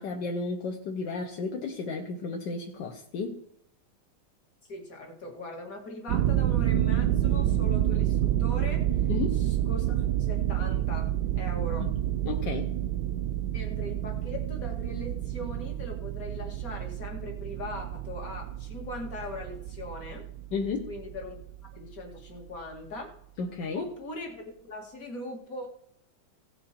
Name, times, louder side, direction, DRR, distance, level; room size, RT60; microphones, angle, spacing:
voice 1, 0.0-3.4 9.1-9.4 11.8-11.9 12.3-12.7 20.5-20.9 23.4-23.9, left 4 dB, 75° left, 2 dB, 1.6 m, -33 dB
voice 2, 4.7-9.0 9.3-11.9 13.5-20.3 20.9-21.4 21.7-23.1 23.7-25.7, left 2 dB, 50° left, 1 dB, 2.4 m, -40 dB
sound 1, 6.1-21.9, right 12 dB, 70° right, 1.0 m, -29 dB
16.5 x 6.9 x 4.3 m, 0.73 s
omnidirectional pair, 1.9 m